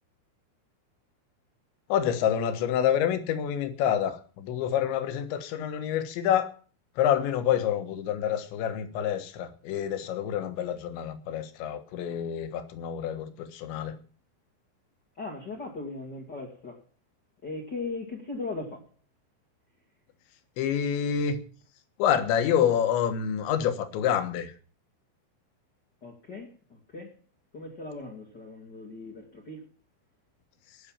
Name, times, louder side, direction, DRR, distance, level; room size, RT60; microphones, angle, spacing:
voice 1, 1.9-6.5 7.0-14.0 20.6-21.4 22.0-24.5, left 9 dB, 70° left, 3.4 m, -27 dB
voice 2, 15.1-16.8 17.4-18.9 26.0-27.1 27.5-29.6, left 3 dB, 50° left, 1.2 m, -38 dB
18.5 x 6.6 x 7.3 m
omnidirectional pair, 5.7 m